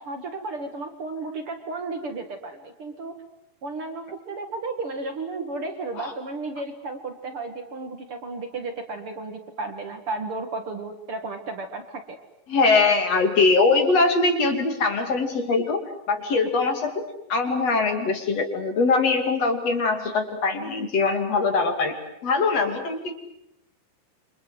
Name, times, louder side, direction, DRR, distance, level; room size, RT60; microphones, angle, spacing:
voice 1, 0.0-3.2 3.6-12.2, right 3 dB, 45° right, 6 dB, 2.6 m, -33 dB
voice 2, 12.5-15.8 16.1-22.0 22.2-23.1, left 3 dB, 50° left, 6 dB, 3.7 m, -22 dB
28.5 x 25.5 x 8.0 m, 0.81 s
omnidirectional pair, 3.8 m